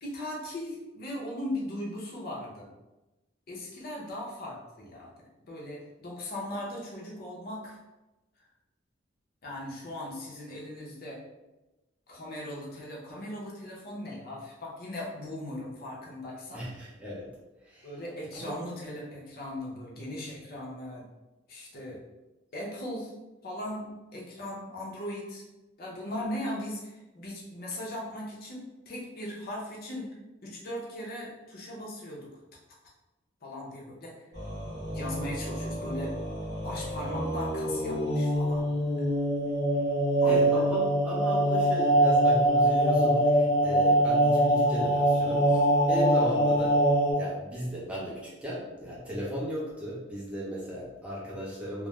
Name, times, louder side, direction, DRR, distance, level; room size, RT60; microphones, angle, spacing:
voice 1, 0.0-2.7 3.5-7.8 9.4-11.2 12.1-16.6 17.8-21.0 21.5-22.0 22.5-23.1 23.4-25.4 25.8-30.1 30.4-32.4 33.4-34.1 34.9-36.2 36.6-39.0 40.2-40.6, left 1 dB, 55° left, -3 dB, 0.6 m, -38 dB
voice 2, 16.5-17.3 17.6-17.9 18.3-18.6 39.7-39.9 40.2-51.9, equal, 5° right, -6 dB, 0.6 m, -36 dB
sound 1, 34.3-47.1, right 1 dB, 15° left, 1.2 m, -24 dB
2.3 x 2.0 x 3.0 m, 1.0 s
head